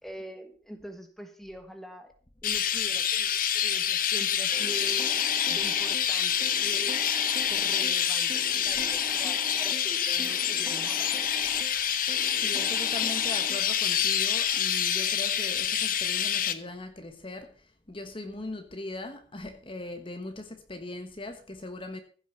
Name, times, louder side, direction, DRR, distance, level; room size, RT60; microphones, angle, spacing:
voice 1, 0.0-2.1 2.4-6.9 7.5-11.2, equal, ahead, 1.5 m, -44 dB
Chirp tweet, 2.4-16.5, left 9 dB, 45° left, 1.0 m, -27 dB
sound 1, 4.5-14.0, right 1 dB, 20° right, 0.8 m, -44 dB
voice 2, 12.3-22.0, left 2 dB, 30° left, 1.2 m, -40 dB
15.0 x 6.3 x 6.7 m
head